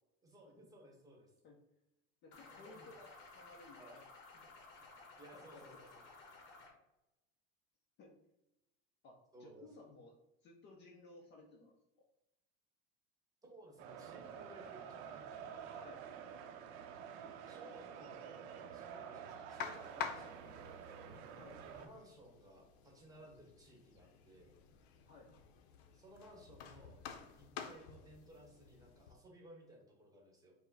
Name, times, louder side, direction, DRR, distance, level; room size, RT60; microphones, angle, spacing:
voice 1, 0.2-1.3 2.4-3.0 3.8-4.1 5.2-6.1 9.3-9.7 13.4-15.9 17.5-18.2 18.7-20.9 21.6-24.5 25.9-27.0 27.4-30.5, right 1 dB, 10° right, -1 dB, 0.9 m, -59 dB
voice 2, 2.2-4.0 4.3-4.4 5.3-6.0 8.0-8.2 9.0-10.1 10.4-12.1 15.7-16.0 21.3-21.6 25.0-25.3, left 3 dB, 35° left, 1 dB, 0.6 m, -58 dB
sound 1, 2.3-6.7, left 3 dB, 50° left, 1.2 m, -57 dB
sound 2, 13.8-21.9, right 7 dB, 80° right, 0.6 m, -49 dB
sound 3, 19.6-29.1, left 8 dB, 90° left, 0.6 m, -50 dB
4.7 x 2.1 x 3.9 m, 0.92 s
supercardioid pair, 150°, 32 cm